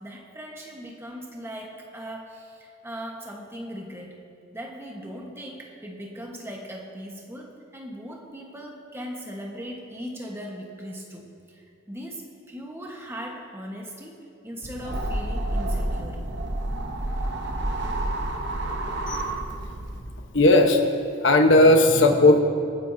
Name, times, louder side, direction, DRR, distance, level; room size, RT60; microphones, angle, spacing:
voice 1, 0.0-4.1 4.5-16.2, equal, 10° right, 0 dB, 1.2 m, -39 dB
sound 1, 14.6-20.0, right 1 dB, 55° right, 0.9 m, -29 dB
voice 2, 20.3-20.8 21.2-22.4, left 2 dB, 60° left, 4 dB, 1.0 m, -16 dB
27.0 x 9.1 x 2.7 m, 2.5 s
head